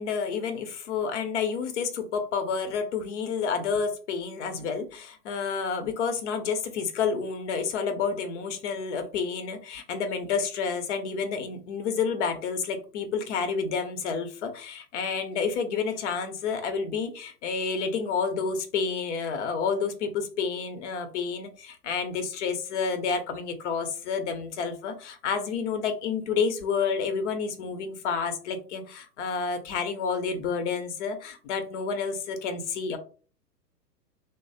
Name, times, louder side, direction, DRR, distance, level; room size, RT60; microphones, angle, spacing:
voice 1, 0.0-33.0, left 5 dB, 45° left, 7 dB, 0.9 m, -29 dB
3.0 x 2.1 x 4.1 m, 0.38 s
figure-of-eight pair, 110°, 49 cm